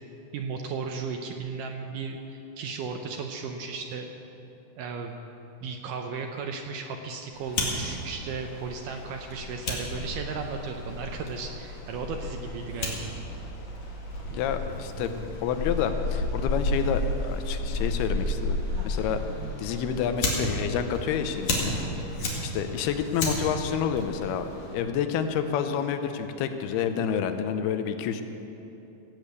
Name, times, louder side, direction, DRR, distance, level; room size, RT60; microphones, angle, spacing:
voice 1, 0.3-4.1 4.8-5.2 5.6-13.0 22.2-22.4, right 5 dB, 75° right, 3 dB, 2.0 m, -35 dB
Fire, 7.3-24.7, left 1 dB, 50° left, 2.9 m, -32 dB
sound 1, 12.8-13.6 14.2-16.8 17.2-22.7 23.1-23.6, right 1 dB, 55° right, 1.5 m, -47 dB
voice 2, 14.3-18.6 18.8-19.2 19.6-21.8 22.4-28.2, left 7 dB, 90° left, 8 dB, 2.8 m, -29 dB
17.0 x 8.4 x 8.2 m, 3.0 s
omnidirectional pair, 4.5 m